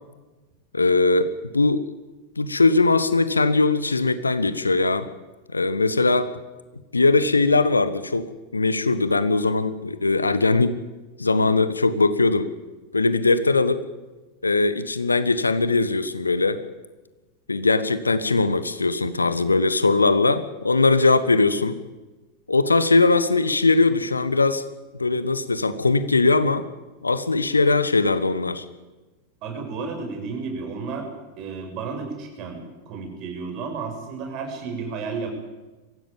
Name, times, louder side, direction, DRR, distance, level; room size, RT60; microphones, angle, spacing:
voice 1, 0.7-1.8 2.4-5.1 5.5-6.3 6.9-10.8 11.2-12.5 12.9-13.8 14.4-16.6 17.5-21.8 22.5-24.6 25.0-26.6 27.0-28.6, left 3 dB, 80° left, 13 dB, 1.3 m, -20 dB
voice 2, 29.4-31.1 31.4-35.3, right 4 dB, 40° right, 3 dB, 6.8 m, -32 dB
23.5 x 16.0 x 9.0 m, 1.2 s
figure-of-eight pair, 90°, 0 cm